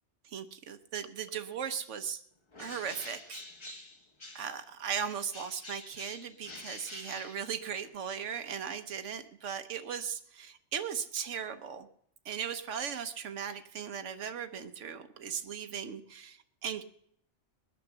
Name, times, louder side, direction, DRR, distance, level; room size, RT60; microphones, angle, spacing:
voice 1, 0.2-2.2 2.6-3.4 4.3-11.9 12.2-16.8, right 7 dB, 85° right, 8 dB, 1.2 m, -38 dB
Bird, 2.5-4.6 4.9-8.0, left 2 dB, 25° left, 1.0 m, -47 dB
21.0 x 8.9 x 6.9 m, 0.70 s
omnidirectional pair, 1.2 m